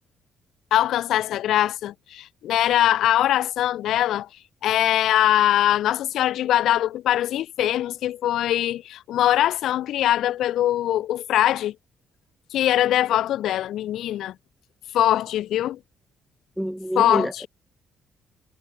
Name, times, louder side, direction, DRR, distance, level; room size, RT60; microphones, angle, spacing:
voice 1, 0.7-4.3 4.6-11.7 12.5-14.3 14.9-15.8 16.9-17.5, left 12 dB, 80° left, 6.4 m, -22 dB
voice 2, 16.6-17.5, equal, 5° right, 4.9 m, -27 dB
cardioid pair, 90°, 0 cm